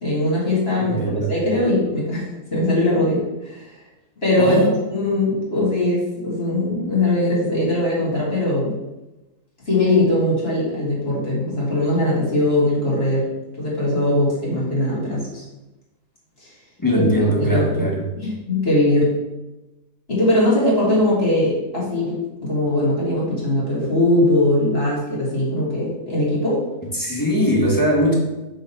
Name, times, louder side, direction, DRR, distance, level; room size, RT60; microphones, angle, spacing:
voice 1, 0.0-1.0 1.3-3.7 4.2-8.8 9.7-13.3 13.6-15.4 16.9-17.0 17.4-17.9 18.2-19.1 20.1-26.6, left 1 dB, 35° left, -6 dB, 2.3 m, -20 dB
voice 2, 0.8-1.3 4.4-4.8 16.8-18.0 26.9-28.1, equal, 15° left, -4 dB, 1.1 m, -20 dB
5.3 x 3.8 x 5.7 m, 1.0 s
omnidirectional pair, 1.8 m